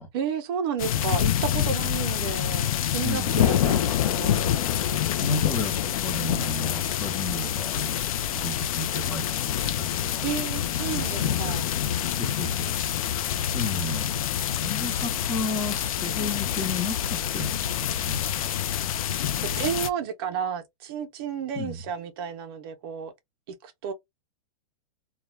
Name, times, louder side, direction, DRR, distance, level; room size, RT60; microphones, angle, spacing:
voice 1, 0.1-4.7 10.2-11.7 19.4-23.1 23.5-23.9, right 7 dB, 40° right, 0.6 m, -32 dB
sound 1, 0.8-19.9, left 10 dB, 75° left, 0.4 m, -27 dB
voice 2, 3.0-3.8 5.2-8.0 8.3-10.2 10.8-13.3 13.5-14.2 14.6-18.6 21.6-21.8, left 3 dB, 10° left, 0.6 m, -33 dB
2.2 x 2.2 x 3.0 m
supercardioid pair, 155°, 18 cm